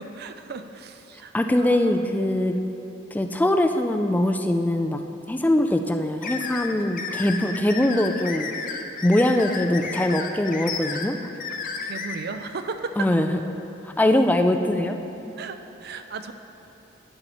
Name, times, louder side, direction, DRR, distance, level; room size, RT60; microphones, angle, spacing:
voice 1, 0.0-1.3 1.6-2.0 11.8-13.0 15.4-16.3, right 4 dB, 55° right, 8 dB, 0.5 m, -36 dB
voice 2, 1.3-2.6 3.1-5.0 5.3-8.5 9.0-11.2 13.0-13.4 13.8-15.0, left 1 dB, 10° left, 5 dB, 0.3 m, -22 dB
sound 1, 6.2-12.1, left 5 dB, 45° left, 0.6 m, -32 dB
11.5 x 8.9 x 3.0 m, 2.9 s
head